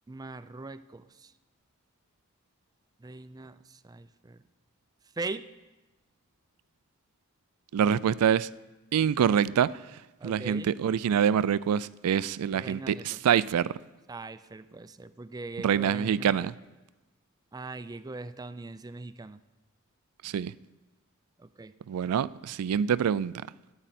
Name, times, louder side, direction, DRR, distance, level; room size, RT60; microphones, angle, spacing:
voice 1, 0.1-1.3 3.0-3.6 3.8-4.4 5.2-5.5 10.2-10.7 12.5-13.2 14.1-16.4 17.5-19.4 21.4-21.7 22.0-22.1, right 3 dB, 15° right, 12 dB, 0.4 m, -40 dB
voice 2, 7.7-8.5 8.9-9.7 10.2-13.7 15.6-16.5 20.2-20.5 21.9-23.4, right 8 dB, 90° right, 18 dB, 0.4 m, -25 dB
19.0 x 8.9 x 4.2 m, 1.1 s
head